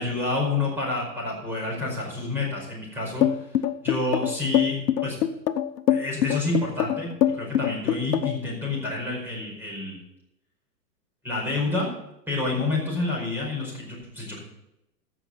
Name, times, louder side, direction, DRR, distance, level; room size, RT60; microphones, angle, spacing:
voice 1, 0.0-3.5 3.8-5.2 5.9-10.0 11.2-11.9 12.3-14.4, left 2 dB, 5° right, -3 dB, 4.9 m, -29 dB
sound 1, 3.2-8.5, left 10 dB, 70° left, 0.9 m, -23 dB
15.0 x 6.2 x 5.6 m, 0.86 s
hypercardioid pair, 130°, 49 cm